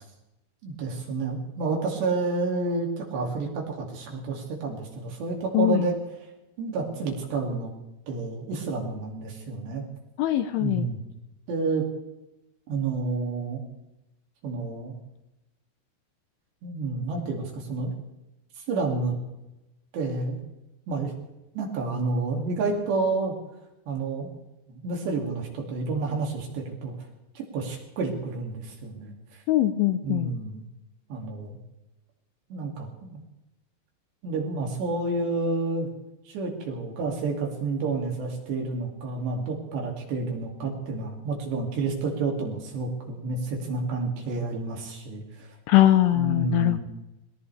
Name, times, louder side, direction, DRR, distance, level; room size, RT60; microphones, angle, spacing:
voice 1, 0.6-6.0 6.6-7.7 8.1-9.8 10.6-11.0 11.5-11.9 12.7-13.6 14.4-14.9 16.6-17.9 18.7-19.2 19.9-20.4 20.9-21.1 21.5-23.3 23.9-24.3 24.7-26.9 27.4-29.1 30.0-30.6 31.1-31.6 32.5-33.2 34.2-35.9 36.3-45.5 46.1-46.8, right 3 dB, 60° right, 0 dB, 4.5 m, -29 dB
voice 2, 5.5-5.9 10.2-10.9 29.5-30.3 45.7-46.8, left 13 dB, 80° left, 8 dB, 3.1 m, -21 dB
21.0 x 19.0 x 3.4 m, 0.94 s
omnidirectional pair, 5.8 m